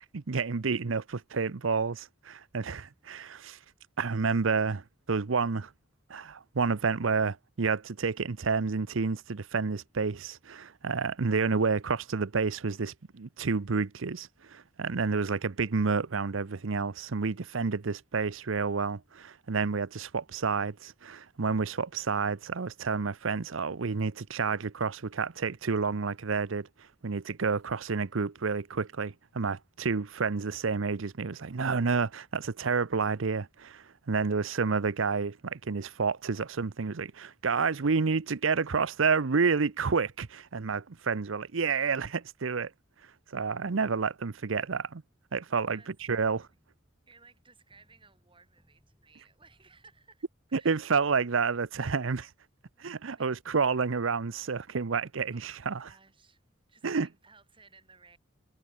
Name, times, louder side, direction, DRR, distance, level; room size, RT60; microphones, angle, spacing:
voice 1, 0.1-3.6 4.0-5.7 6.1-26.7 27.0-42.7 43.3-45.0 45.3-45.8 46.1-46.5 50.5-52.3 52.8-55.9 56.8-57.1, right 5 dB, 75° right, 0.7 m, -29 dB
sound 1, 46.0-51.5, equal, 5° right, 6.3 m, -71 dB
voice 2, 46.1-46.6 47.1-50.2 50.6-50.8 52.8-53.3 55.3-56.4 56.7-58.2, right 4 dB, 25° right, 5.0 m, -60 dB
head